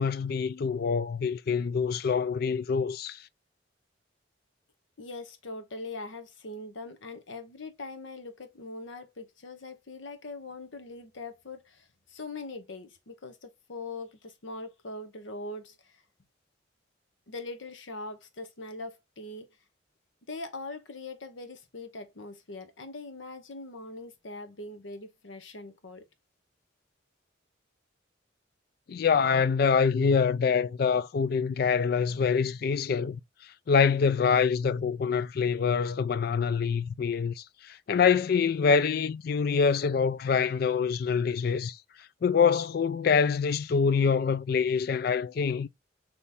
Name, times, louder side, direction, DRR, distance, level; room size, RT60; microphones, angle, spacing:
voice 1, 0.0-3.2 28.9-33.2 33.7-41.8 42.2-45.7, left 6 dB, 50° left, 0.3 m, -25 dB
voice 2, 5.0-16.0 17.3-19.6 20.3-26.0, left 2 dB, 85° left, 0.9 m, -42 dB
3.4 x 3.1 x 4.1 m
head